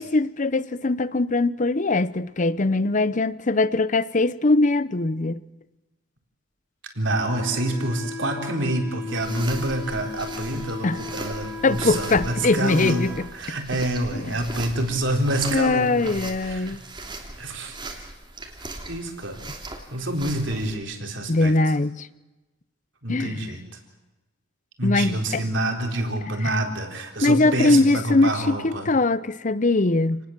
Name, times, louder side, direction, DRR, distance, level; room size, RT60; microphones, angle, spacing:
voice 1, 0.0-5.4 10.8-11.0 11.6-13.6 14.1-14.3 15.5-16.8 21.3-22.1 23.1-23.6 24.8-25.4 26.4-26.5 27.2-30.2, left 2 dB, 40° left, 0.7 m, -22 dB
voice 2, 7.0-13.1 13.3-16.8 17.4-17.8 18.9-19.4 19.9-21.5 23.0-23.6 24.8-28.9, right 1 dB, 65° right, 4.2 m, -27 dB
Wind instrument woodwind instrument, 7.1-13.3, left 3 dB, 15° left, 5.0 m, -37 dB
sound 1, 9.1-20.8, right 2 dB, 25° right, 3.0 m, -39 dB
29.0 x 19.5 x 7.5 m
head